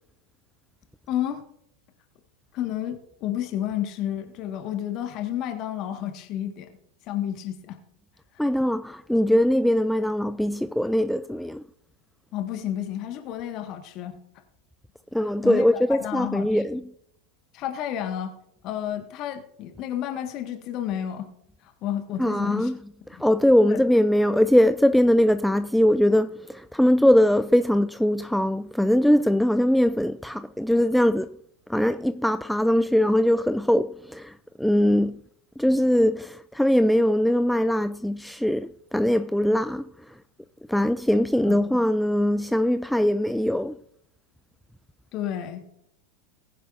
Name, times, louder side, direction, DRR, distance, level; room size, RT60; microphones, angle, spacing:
voice 1, 1.1-1.4 2.5-6.7 7.0-7.8 12.3-14.2 15.4-16.6 17.5-18.3 18.6-21.3 21.6-22.7 23.6-23.8 41.4-41.6 45.1-45.7, left 11 dB, 40° left, 1.6 m, -31 dB
voice 2, 8.4-11.6 15.1-16.8 22.2-22.8 23.1-31.4 31.7-35.2 35.6-40.2 40.7-43.8, equal, ahead, 0.3 m, -21 dB
20.0 x 10.0 x 2.6 m
figure-of-eight pair, 85°, 0 cm